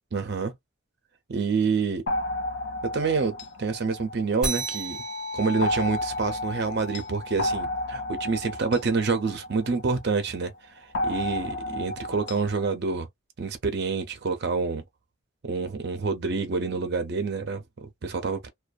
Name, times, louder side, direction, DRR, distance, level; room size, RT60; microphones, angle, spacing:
voice 1, 0.1-0.5 1.3-2.0 2.9-5.0 5.3-10.5 10.8-13.1 13.4-14.8 15.4-18.5, right 4 dB, 50° right, 0.5 m, -27 dB
sound 1, 2.1-4.8 5.6-10.2 10.9-12.7, left 1 dB, 55° left, 0.4 m, -32 dB
sound 2, 4.4-9.3, equal, 5° right, 1.3 m, -35 dB
2.5 x 2.2 x 2.3 m
head